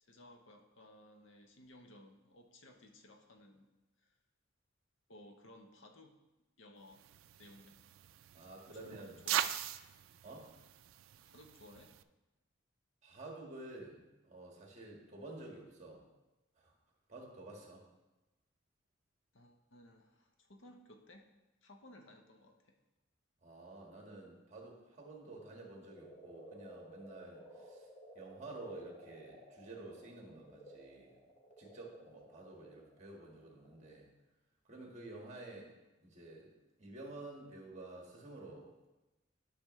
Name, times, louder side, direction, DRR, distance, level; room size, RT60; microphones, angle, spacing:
voice 1, 0.0-3.7 4.0-4.2 5.1-6.2 6.6-7.0 7.4-7.8 8.7-9.5 11.2-11.9 19.3-21.3 21.6-22.8, left 1 dB, 70° left, 4 dB, 0.8 m, -58 dB
sound 1, 6.9-12.0, right 10 dB, 80° right, 0.3 m, -41 dB
voice 2, 8.3-9.2 10.2-10.5 13.0-16.0 16.6-16.7 17.1-17.9 23.4-27.9 28.1-31.2 31.6-34.1 34.6-36.5 36.8-38.9, right 2 dB, 35° right, -1 dB, 1.6 m, -51 dB
sound 2, 25.2-34.0, right 1 dB, 30° left, 1.4 m, -56 dB
12.0 x 6.0 x 3.1 m, 1.1 s
head